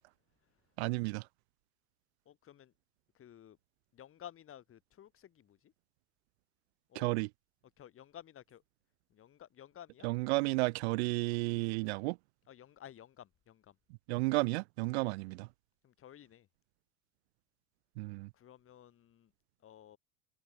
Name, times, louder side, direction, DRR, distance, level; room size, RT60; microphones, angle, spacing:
voice 1, 0.8-1.3 6.9-7.3 10.0-12.2 14.1-15.5 18.0-18.3, right 25 dB, 50° right, 0.5 m, -32 dB
voice 2, 2.3-2.7 3.2-3.6 3.9-5.7 6.9-7.1 7.8-8.6 9.1-10.1 12.5-13.8 15.8-16.5 18.3-19.3 19.6-20.0, left 10 dB, 30° left, 2.0 m, -54 dB
open air
figure-of-eight pair, 85°, 44 cm